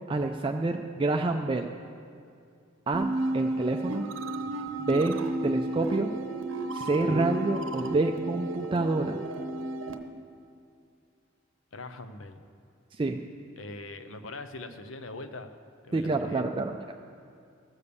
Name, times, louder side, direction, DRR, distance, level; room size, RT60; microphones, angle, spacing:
voice 1, 0.1-1.7 2.9-3.1 3.3-4.1 4.8-5.2 5.4-6.1 6.7-9.2 13.0-13.2 15.9-16.8, right 2 dB, 25° right, 4 dB, 0.4 m, -27 dB
sound 1, 2.9-10.0, right 2 dB, 75° right, 0.8 m, -32 dB
voice 2, 11.7-12.4 13.6-15.6 15.8-16.5, left 2 dB, 75° left, 9 dB, 0.7 m, -42 dB
14.0 x 6.8 x 7.0 m, 2.4 s
head